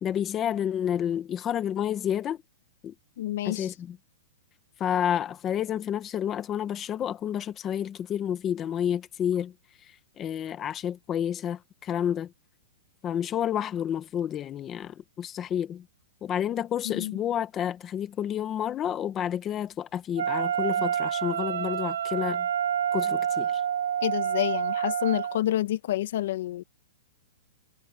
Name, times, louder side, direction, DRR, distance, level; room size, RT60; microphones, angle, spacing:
voice 1, 0.0-2.4 2.8-2.9 3.4-4.0 4.8-9.5 10.2-12.3 13.0-15.8 16.2-22.5 22.9-23.5, left 9 dB, 15° left, 1.1 m, -30 dB
voice 2, 3.2-3.7 16.9-17.1 24.0-26.6, left 13 dB, 50° left, 0.9 m, -28 dB
Wind instrument woodwind instrument, 20.2-25.4, right 9 dB, 90° right, 4.6 m, -28 dB
hypercardioid pair, 175°, 0 cm